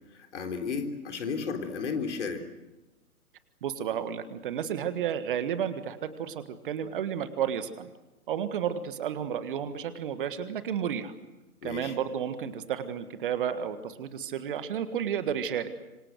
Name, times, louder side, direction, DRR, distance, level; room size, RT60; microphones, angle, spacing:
voice 1, 0.1-2.4 11.6-11.9, left 5 dB, 50° left, 5 dB, 3.7 m, -33 dB
voice 2, 3.6-7.9 8.3-11.1 11.6-15.7, right 8 dB, 35° right, 11 dB, 1.6 m, -32 dB
26.5 x 25.0 x 7.9 m, 1.0 s
figure-of-eight pair, 125°, 44 cm